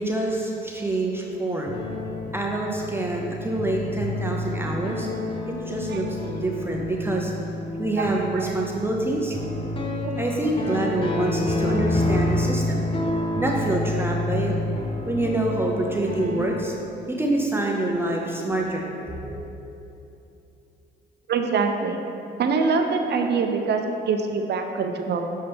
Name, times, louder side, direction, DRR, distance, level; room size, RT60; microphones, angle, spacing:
voice 1, 0.0-1.8 2.3-5.1 5.7-7.3 7.8-9.4 10.2-12.8 13.4-14.5 15.1-16.7 17.1-19.5, right 2 dB, 10° right, -1 dB, 0.7 m, -26 dB
sound 1, 1.7-16.5, left 1 dB, 25° left, 0.8 m, -28 dB
voice 2, 5.9-6.5 8.0-8.5 10.0-10.2 10.7-10.8 21.3-22.0 22.4-25.2, right 4 dB, 60° right, 4 dB, 0.7 m, -25 dB
7.1 x 5.5 x 3.5 m, 2.8 s
cardioid pair, 90°, 20 cm